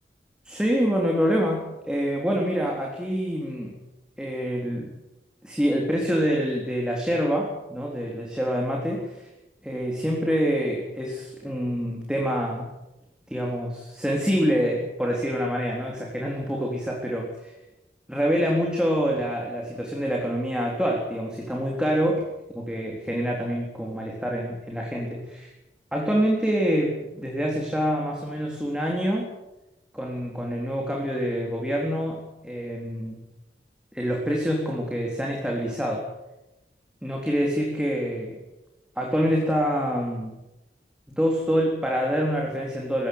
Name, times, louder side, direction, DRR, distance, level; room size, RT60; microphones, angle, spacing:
voice 1, 0.5-3.8 4.2-4.9 5.4-9.3 9.6-12.7 13.3-17.5 18.1-22.2 22.5-25.5 25.9-29.3 29.9-33.2 33.9-36.1 37.0-38.4 39.0-40.3 41.1-43.1, equal, 5° right, -1 dB, 3.7 m, -26 dB
21.5 x 17.0 x 9.6 m, 0.96 s
head